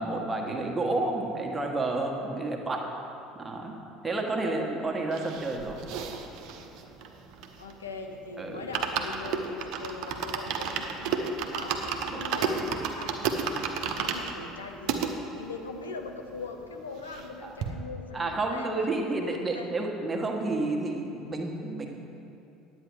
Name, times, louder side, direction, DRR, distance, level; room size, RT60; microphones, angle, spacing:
voice 1, 0.0-2.9 3.4-3.8 4.0-5.8 8.4-8.6 12.1-12.2 17.4-17.5 18.1-21.9, right 2 dB, 20° right, 1 dB, 1.4 m, -30 dB
sound 1, 5.1-7.9 8.2-8.3 8.6-15.1 15.7-15.8 15.9-16.0 16.4-17.3 17.6-17.7, right 6 dB, 55° right, 0.8 m, -32 dB
voice 2, 7.6-19.7, left 4 dB, 80° left, 4 dB, 0.7 m, -41 dB
10.5 x 8.6 x 4.7 m, 2.8 s
figure-of-eight pair, 65°, 0 cm